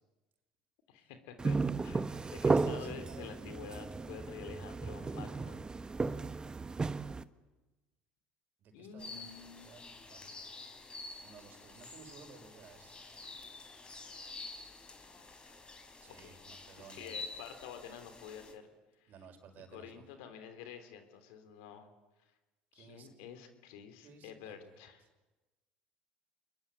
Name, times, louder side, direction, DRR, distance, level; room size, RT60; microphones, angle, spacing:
voice 1, 0.9-5.6 8.7-9.8 16.2-16.4 16.8-18.7 19.0-19.1 19.7-21.9 22.7-25.0, left 8 dB, 75° left, 9 dB, 3.3 m, -49 dB
sound 1, 1.4-7.2, right 4 dB, 20° right, 1.1 m, -34 dB
voice 2, 2.5-3.5 3.8-4.3 4.7-5.9 8.6-10.3 11.2-13.7 16.0-17.1 19.1-20.1 22.7-23.1 24.0-24.8, right 5 dB, 55° right, 6 dB, 5.5 m, -57 dB
sound 2, 9.0-18.5, left 3 dB, 25° left, 4.4 m, -49 dB
27.0 x 22.0 x 9.0 m, 1.1 s
hypercardioid pair, 75°, 4 cm